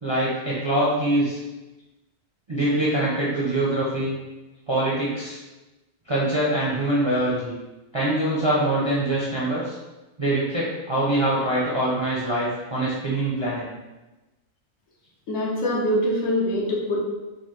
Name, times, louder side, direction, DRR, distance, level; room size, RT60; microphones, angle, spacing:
voice 1, 0.0-1.4 2.5-4.2 4.7-5.4 6.1-7.5 7.9-9.8 10.2-13.7, right 1 dB, 30° right, -7 dB, 0.5 m, -24 dB
voice 2, 15.3-17.0, equal, 60° left, -4 dB, 1.1 m, -24 dB
4.0 x 2.3 x 3.1 m, 1.1 s
omnidirectional pair, 1.4 m